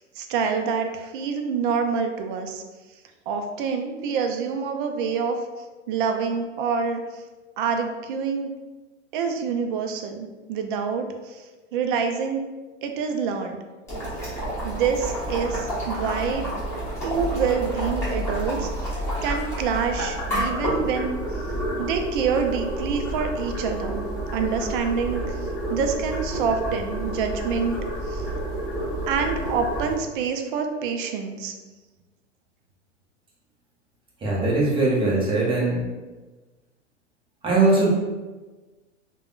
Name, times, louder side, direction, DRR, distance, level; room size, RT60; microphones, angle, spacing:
voice 1, 0.2-2.6 3.3-5.4 5.9-7.0 7.6-8.5 9.1-11.1 11.7-12.4 12.8-13.6 14.6-16.4 17.0-18.7 19.2-21.2 21.8-24.0 24.3-25.2 25.7-27.8 28.1-28.2 29.1-31.5, right 6 dB, 45° right, 5 dB, 0.4 m, -26 dB
Boiling, 13.9-29.9, right 1 dB, 5° left, 1.2 m, -29 dB
voice 2, 34.2-35.8 37.4-37.9, right 2 dB, 15° right, -4 dB, 0.7 m, -20 dB
3.3 x 2.2 x 2.4 m, 1.2 s
hypercardioid pair, 110°, 37 cm